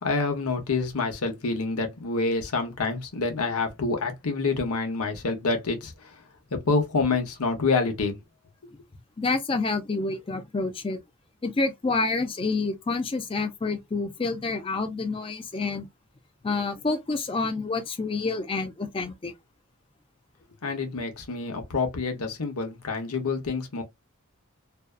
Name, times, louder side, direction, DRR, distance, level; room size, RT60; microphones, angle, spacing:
voice 1, 0.0-6.2 6.5-8.2 20.6-23.8, left 4 dB, 85° left, 0.9 m, -27 dB
voice 2, 9.2-11.0 11.4-15.9 16.4-19.3, left 3 dB, 25° left, 0.4 m, -28 dB
2.6 x 2.3 x 2.3 m
head